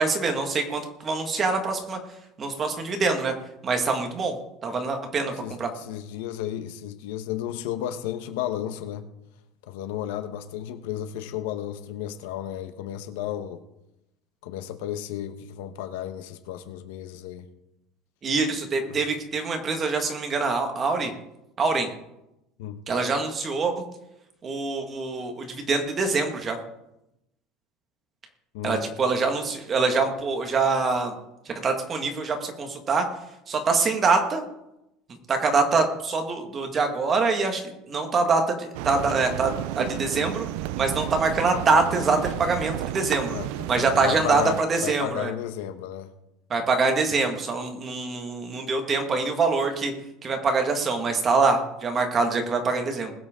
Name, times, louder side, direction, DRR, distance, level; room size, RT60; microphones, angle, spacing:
voice 1, 0.0-2.0 2.4-3.3 3.6-4.3 4.6-5.7 18.2-21.1 21.6-21.9 22.9-23.7 24.4-26.6 28.6-31.1 31.4-33.0 33.5-34.4 35.3-40.4 40.8-43.3 43.7-45.3 46.5-49.9 50.2-53.1, right 4 dB, 25° right, 1.8 m, -24 dB
voice 2, 5.4-9.1 9.7-13.6 14.4-17.5 18.9-19.0 22.6-22.8 28.5-28.9 43.3-46.1, left 11 dB, 90° left, 1.2 m, -33 dB
sound 1, 38.7-44.6, right 14 dB, 70° right, 0.5 m, -32 dB
20.5 x 8.0 x 3.8 m
cardioid pair, 155°, 0 cm